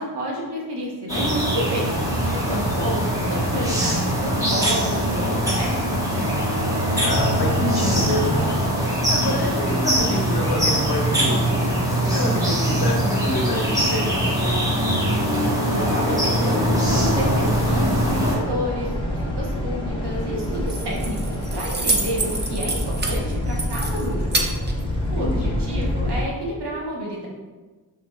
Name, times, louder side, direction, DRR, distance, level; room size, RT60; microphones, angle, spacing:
voice 1, 0.0-5.8 6.1-6.3 15.6-24.4 25.1-27.3, equal, 85° right, -3 dB, 1.1 m, -30 dB
sound 1, 1.1-18.4, equal, 10° right, 1.2 m, -22 dB
voice 2, 7.0-8.7 9.1-11.6 11.9-14.3 25.1-25.6, left 1 dB, 65° left, 1 dB, 0.9 m, -27 dB
sound 2, 16.6-26.2, left 1 dB, 15° left, 0.9 m, -27 dB
Keys jangling, 20.4-25.5, right 2 dB, 25° right, 0.6 m, -29 dB
5.8 x 3.0 x 2.2 m, 1.3 s
cardioid pair, 65°, 40 cm